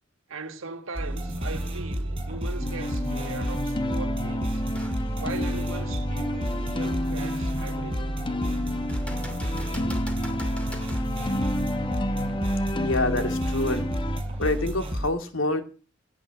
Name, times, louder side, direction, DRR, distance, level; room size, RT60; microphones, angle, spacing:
voice 1, 0.3-4.6 5.2-8.2, right 3 dB, 85° right, 1.7 m, -39 dB
sound 1, 1.0-15.1, equal, 25° right, 5.1 m, -31 dB
sound 2, 2.6-14.2, left 1 dB, 25° left, 0.9 m, -30 dB
sound 3, 4.7-5.0 5.6-5.7 8.9-11.1 14.8-14.9, equal, 5° left, 2.5 m, -42 dB
voice 2, 12.8-13.9 14.4-15.6, left 2 dB, 85° left, 2.3 m, -27 dB
17.5 x 6.1 x 9.6 m
head